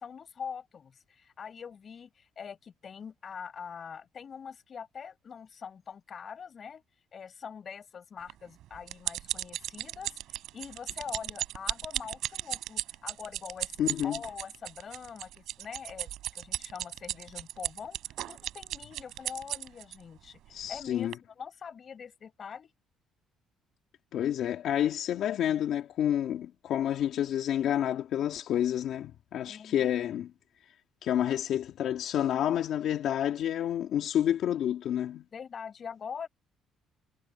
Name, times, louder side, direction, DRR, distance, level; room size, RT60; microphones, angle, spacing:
voice 1, 0.0-6.8 7.1-13.8 14.0-22.7 29.5-30.0 35.3-36.3, left 7 dB, 45° left, 4.6 m, -44 dB
sound 1, 8.3-20.0 20.6-20.8 21.1-21.2, right 14 dB, 80° right, 3.6 m, -36 dB
voice 2, 13.8-14.2 20.5-21.1 24.1-30.3 31.0-35.2, left 10 dB, 70° left, 1.9 m, -29 dB
cardioid pair, 95°, 0 cm